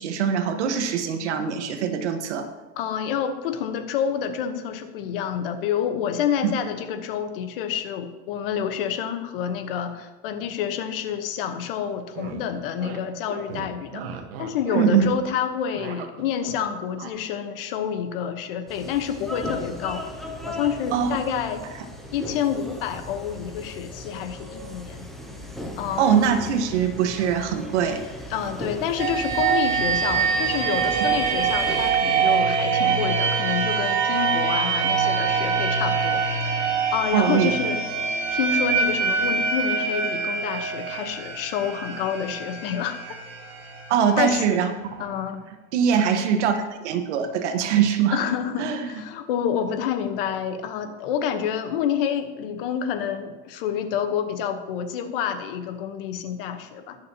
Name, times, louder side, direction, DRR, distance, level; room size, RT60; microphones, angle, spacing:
voice 1, 0.0-2.5 6.4-6.5 14.7-15.1 20.9-21.2 26.0-28.0 37.1-37.5 43.9-44.7 45.7-48.2 48.6-49.0, right 7 dB, 85° right, 6 dB, 1.4 m, -22 dB
voice 2, 2.8-14.0 14.4-20.0 20.5-21.6 22.1-25.1 25.8-26.1 28.3-36.2 36.9-37.9 38.3-43.2 44.2-44.4 45.0-45.4 48.1-57.0, left 8 dB, 55° left, 8 dB, 1.1 m, -28 dB
sound 1, 11.9-12.4 12.8-13.0 13.3-15.3 15.5-16.6 17.0-17.1, right 7 dB, 60° right, 1.3 m, -37 dB
sound 2, 18.7-31.9, left 1 dB, ahead, 0.4 m, -37 dB
sound 3, 29.0-44.6, right 5 dB, 35° right, 1.7 m, -24 dB
20.0 x 6.9 x 2.9 m, 1.3 s
supercardioid pair, 175°, 34 cm